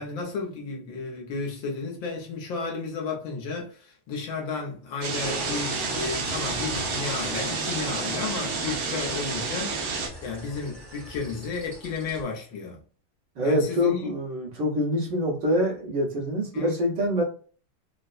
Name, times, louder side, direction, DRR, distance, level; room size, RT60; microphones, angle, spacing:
voice 1, 0.0-9.9 10.2-12.8 13.4-14.2 16.5-16.7, left 4 dB, 70° left, 1.5 m, -33 dB
sound 1, 5.0-10.1, right 4 dB, 80° right, 1.6 m, -30 dB
sound 2, 5.2-12.2, equal, ahead, 0.6 m, -39 dB
voice 2, 13.4-17.2, equal, 60° right, 1.8 m, -25 dB
4.2 x 2.2 x 2.4 m
omnidirectional pair, 2.3 m